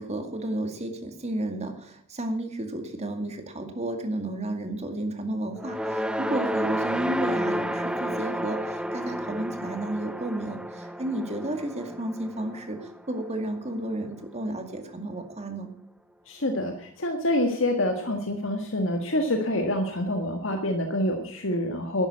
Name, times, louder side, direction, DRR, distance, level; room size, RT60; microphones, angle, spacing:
voice 1, 0.0-15.7, right 1 dB, 35° right, 6 dB, 2.2 m, -32 dB
sound 1, 5.5-13.9, equal, 5° right, 0.6 m, -31 dB
voice 2, 16.3-22.1, left 1 dB, 65° left, 4 dB, 1.6 m, -27 dB
11.5 x 10.5 x 8.5 m, 0.66 s
head